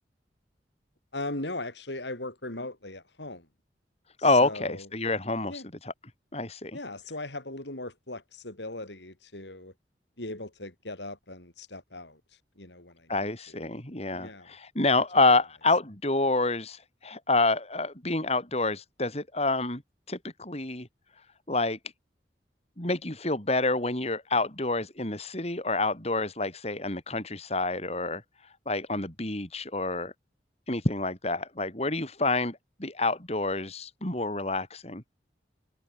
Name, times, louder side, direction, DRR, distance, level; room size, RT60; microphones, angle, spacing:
voice 1, 1.1-3.5 4.4-4.9 5.5-5.6 6.7-9.7 10.2-12.2 12.6-13.1 14.1-14.5, left 2 dB, 85° left, 7.0 m, -38 dB
voice 2, 4.2-5.9 6.3-6.8 13.1-19.8 20.1-20.9 21.5-21.8 22.8-30.1 30.7-35.0, left 3 dB, 35° left, 4.8 m, -28 dB
head